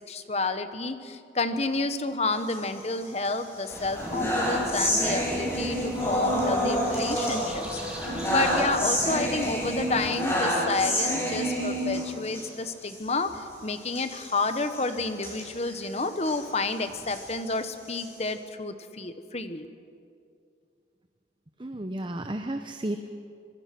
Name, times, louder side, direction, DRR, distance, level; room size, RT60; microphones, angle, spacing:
voice 1, 0.1-19.7, left 3 dB, 35° left, 9 dB, 1.2 m, -30 dB
sound 1, 2.3-3.3 3.7-12.5 12.8-13.0 13.2-13.4 13.9-16.4 16.9-18.3, equal, 15° left, 7.1 m, -29 dB
sound 2, 3.7-10.1, equal, 5° right, 3.1 m, -41 dB
voice 2, 21.6-23.0, right 1 dB, 25° right, 7 dB, 0.8 m, -32 dB
25.5 x 22.0 x 6.1 m, 2.4 s
head